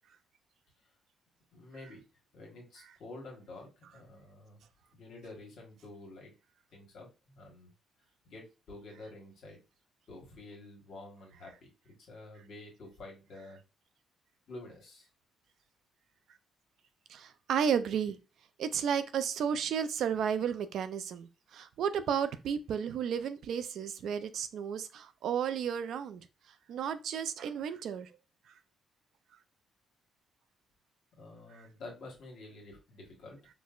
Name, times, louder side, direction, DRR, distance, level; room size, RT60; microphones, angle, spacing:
voice 1, 1.5-2.0 2.3-4.6 4.9-6.3 6.7-7.7 8.2-9.6 10.1-13.6 14.5-15.1 31.2-33.4, left 2 dB, 70° left, 1.2 m, -49 dB
voice 2, 17.1-18.2 18.6-26.3 26.7-28.1 31.5-31.7, right 7 dB, 70° right, 0.3 m, -33 dB
4.3 x 2.1 x 2.4 m
cardioid pair, 90°, 0 cm